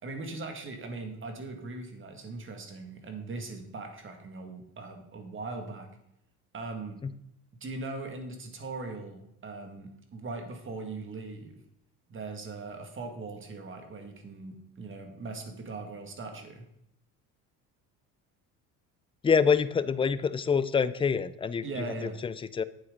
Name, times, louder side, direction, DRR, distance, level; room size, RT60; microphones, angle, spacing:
voice 1, 0.0-5.9 6.5-7.0 7.6-11.6 12.1-16.7 21.6-22.2, right 3 dB, 35° right, 5 dB, 1.9 m, -40 dB
voice 2, 19.2-22.6, left 6 dB, 15° left, 15 dB, 0.4 m, -26 dB
8.7 x 7.8 x 3.8 m, 0.80 s
supercardioid pair, 100°, 37 cm